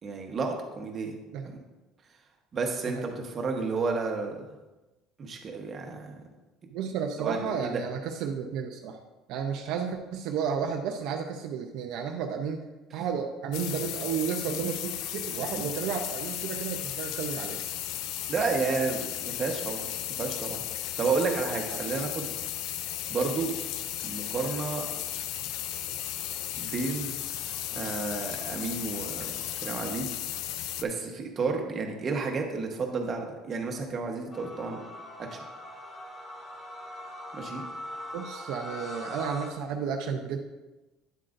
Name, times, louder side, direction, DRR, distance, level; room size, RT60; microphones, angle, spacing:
voice 1, 0.0-1.1 1.4-1.6 2.5-4.5 5.2-6.1 7.2-7.8 18.3-19.9 20.2-20.6 21.0-22.3 23.1-23.5 24.0-24.8 26.6-27.1 27.7-30.1 30.8-34.8 35.3-35.4 37.3-37.6, right 4 dB, 30° right, 2 dB, 1.1 m, -31 dB
voice 2, 6.7-9.0 9.3-12.6 12.9-17.6 21.7-21.8 38.1-40.4, right 7 dB, 65° right, 3 dB, 0.6 m, -32 dB
sound 1, 13.5-30.8, left 12 dB, 70° left, 0.4 m, -35 dB
sound 2, 34.3-39.5, left 1 dB, 20° left, 1.1 m, -41 dB
9.3 x 7.6 x 2.6 m, 1.1 s
cardioid pair, 145°, 0 cm